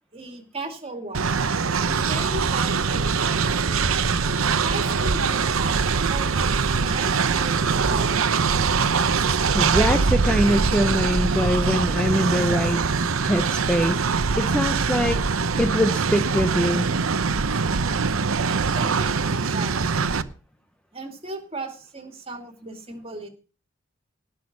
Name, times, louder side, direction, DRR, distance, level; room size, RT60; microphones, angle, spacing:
voice 1, 0.1-1.5 1.8-4.0 4.6-8.5 18.5-20.0 20.9-23.3, right 2 dB, 30° right, 5 dB, 2.4 m, -37 dB
Train, 1.1-20.2, right 5 dB, 75° right, 0.8 m, -23 dB
voice 2, 9.5-12.8 13.2-14.0 14.4-15.2 15.6-16.9, equal, 5° left, 7 dB, 0.6 m, -23 dB
18.0 x 6.1 x 6.0 m, 0.37 s
head